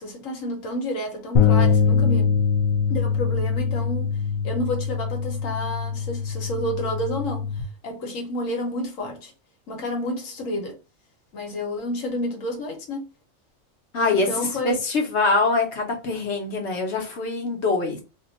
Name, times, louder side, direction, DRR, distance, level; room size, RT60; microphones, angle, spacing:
voice 1, 0.0-2.4 2.9-4.1 4.4-7.5 7.8-9.3 9.7-10.8 11.3-13.0 14.1-14.8, left 1 dB, 80° left, 1.3 m, -30 dB
sound 1, 1.3-7.6, left 6 dB, 45° left, 0.5 m, -23 dB
voice 2, 13.9-18.0, left 3 dB, 60° left, 1.2 m, -24 dB
2.8 x 2.2 x 3.9 m
omnidirectional pair, 1.3 m